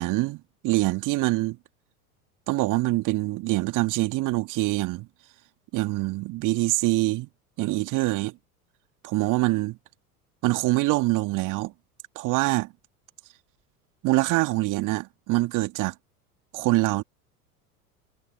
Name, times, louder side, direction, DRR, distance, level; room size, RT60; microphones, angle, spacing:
voice 1, 0.0-1.6 2.5-5.1 5.7-7.3 7.6-8.3 9.0-9.8 10.4-11.7 12.2-12.7 14.0-15.9 16.5-17.0, right 20 dB, 40° right, 2.1 m, -24 dB
figure-of-eight pair, 75°, 46 cm